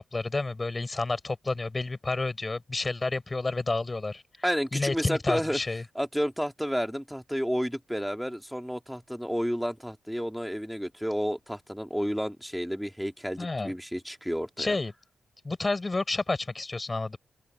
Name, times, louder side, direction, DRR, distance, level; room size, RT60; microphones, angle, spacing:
voice 1, 0.0-4.2 4.7-5.8 13.4-13.7 14.6-14.9 15.4-17.2, left 3 dB, 30° left, 6.6 m, -30 dB
voice 2, 4.4-5.6 5.9-14.8, equal, ahead, 2.8 m, -31 dB
open air
supercardioid pair, 55°, 0 cm